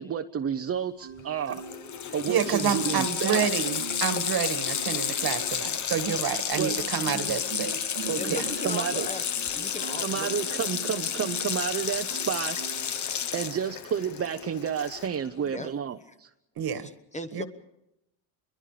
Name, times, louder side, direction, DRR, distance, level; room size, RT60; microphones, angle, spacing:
voice 1, 0.0-1.6 2.1-3.5 6.5-6.7 8.1-9.1 10.0-12.6 13.3-16.3, right 8 dB, 30° right, 5 dB, 0.9 m, -30 dB
Marimba xylophone, 1.0-2.0 2.4-4.2 4.7-5.6 6.1-11.6 12.1-13.0 13.5-13.8, right 6 dB, 80° right, 2.8 m, -42 dB
Water tap faucet, 1.2-1.3 1.5-15.3, left 8 dB, 35° left, 1.2 m, -31 dB
voice 2, 2.3-7.9 8.2-8.4 16.6-16.9 17.3-17.5, right 8 dB, 45° right, 10 dB, 1.9 m, -29 dB
voice 3, 8.2-9.2 9.5-10.4 11.6-11.9 15.4-15.7 16.1-16.2 16.7-17.4, left 2 dB, 15° left, 8 dB, 1.1 m, -38 dB
28.0 x 23.0 x 5.1 m, 0.86 s
cardioid pair, 110°, 49 cm